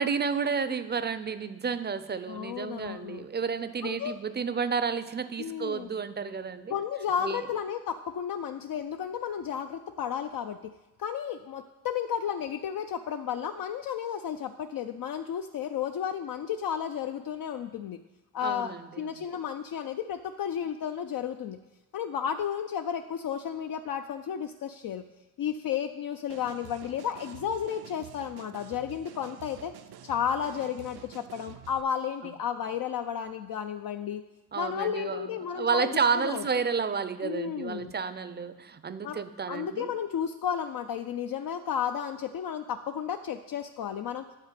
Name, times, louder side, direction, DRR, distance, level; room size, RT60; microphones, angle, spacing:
voice 1, 0.0-6.7 7.2-7.4 18.4-19.1 34.5-39.9, right 5 dB, 30° right, 12 dB, 0.4 m, -31 dB
voice 2, 2.3-3.2 3.8-4.2 5.4-5.9 6.7-10.7 11.0-18.0 18.3-21.6 21.9-25.0 25.4-29.7 30.0-34.2 34.6-36.4 37.2-37.9 39.0-39.2 39.5-44.2, left 8 dB, 65° left, 7 dB, 0.5 m, -33 dB
sound 1, 26.3-31.8, right 9 dB, 90° right, 0.6 m, -49 dB
9.8 x 4.1 x 7.5 m, 1.0 s
wide cardioid pair, 120°, 37 cm